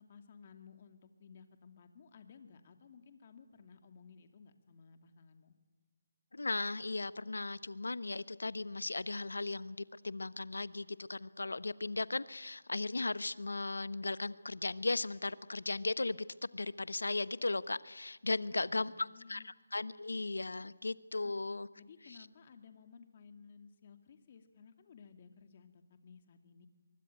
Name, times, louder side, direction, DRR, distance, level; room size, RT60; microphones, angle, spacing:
voice 1, 0.0-5.5 18.4-19.5 21.2-21.4 21.8-26.7, left 6 dB, 40° left, 7 dB, 2.5 m, -57 dB
voice 2, 6.3-16.2 16.5-21.7 22.1-22.2, left 3 dB, 85° left, 17 dB, 1.0 m, -37 dB
24.0 x 23.5 x 9.1 m, 1.2 s
figure-of-eight pair, 160°, 0 cm